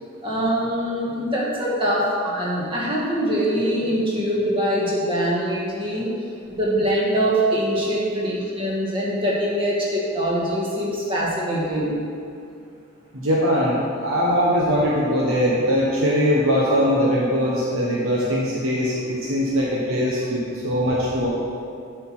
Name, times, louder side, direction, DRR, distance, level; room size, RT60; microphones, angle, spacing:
voice 1, 0.2-6.1 6.6-12.0, equal, 25° right, -5 dB, 1.4 m, -23 dB
voice 2, 13.1-20.4 20.6-21.3, equal, 70° right, -5 dB, 1.0 m, -21 dB
7.8 x 4.5 x 5.8 m, 2.4 s
head